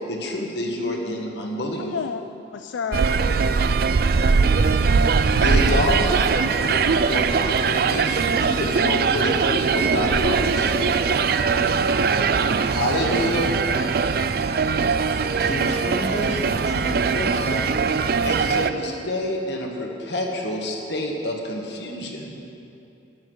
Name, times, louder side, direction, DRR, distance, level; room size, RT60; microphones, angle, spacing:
voice 1, 0.0-1.9 5.1-11.0 12.7-13.5 18.2-22.4, left 1 dB, 70° left, 0 dB, 1.6 m, -28 dB
voice 2, 1.8-2.2 2.5-3.2 11.4-12.6 13.1-14.3, left 6 dB, 85° left, 9 dB, 0.4 m, -34 dB
sound 1, 2.9-18.7, right 5 dB, 55° right, 0.4 m, -21 dB
voice 3, 15.4-17.7, equal, 35° left, -3 dB, 2.0 m, -30 dB
12.0 x 9.7 x 6.2 m, 2.8 s
head